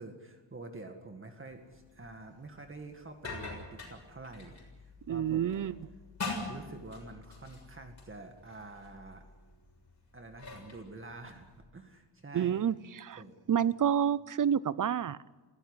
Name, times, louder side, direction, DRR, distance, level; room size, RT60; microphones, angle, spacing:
voice 1, 0.0-4.6 5.1-5.6 6.5-9.2 10.1-12.6 13.2-13.3, right 2 dB, 30° right, 5 dB, 2.0 m, -47 dB
sound 1, 1.5-11.6, left 3 dB, 40° left, 6.9 m, -45 dB
voice 2, 5.1-5.8 12.3-13.2 13.5-15.2, right 9 dB, 45° right, 19 dB, 0.7 m, -29 dB
21.5 x 16.0 x 9.9 m, 1.3 s
wide cardioid pair, 130°, 43 cm